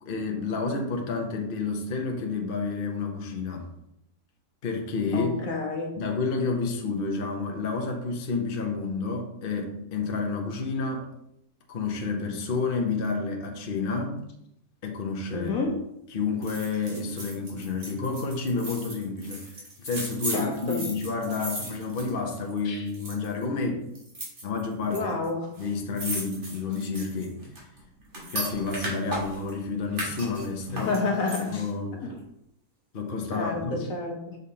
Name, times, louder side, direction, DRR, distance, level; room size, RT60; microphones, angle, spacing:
voice 1, 0.0-3.7 4.6-5.4 6.0-11.1 11.7-14.2 14.8-15.6 16.1-19.5 19.8-23.9 24.4-25.1 25.6-27.4 28.3-31.0 31.4-31.9 32.9-33.9, left 4 dB, 45° left, 2 dB, 0.8 m, -30 dB
voice 2, 5.1-6.0 15.3-15.8 20.3-20.8 22.6-22.8 24.9-25.5 30.7-31.7 32.0-32.1 33.3-34.4, left 3 dB, 60° left, 2 dB, 1.4 m, -29 dB
sound 1, 16.4-22.6 22.9-23.4 24.0-25.0 25.2-25.3 25.5-29.5 29.9-31.7 32.1-32.2, right 1 dB, 50° right, 1.9 m, -36 dB
6.5 x 5.3 x 2.8 m, 0.79 s
omnidirectional pair, 1.7 m